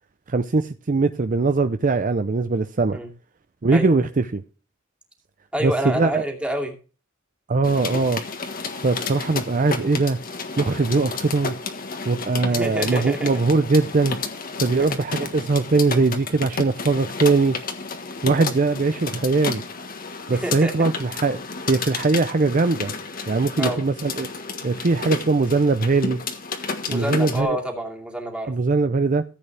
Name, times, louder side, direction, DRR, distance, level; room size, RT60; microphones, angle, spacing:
voice 1, 0.3-3.0 3.6-4.4 5.6-6.2 7.5-8.2 8.8-10.2 10.6-11.6 12.0-14.2 14.6-17.6 18.2-19.6 20.3-21.4 21.7-22.9 23.3-24.3 24.6-26.2 26.9-27.6 28.5-29.2, right 3 dB, 40° right, 0.6 m, -21 dB
voice 2, 5.5-6.7 12.5-13.5 14.7-15.0 20.3-20.7 23.6-23.8 26.9-28.5, equal, 5° right, 2.5 m, -28 dB
sound 1, 7.6-27.4, left 4 dB, 45° left, 1.5 m, -32 dB
14.5 x 8.2 x 3.3 m
head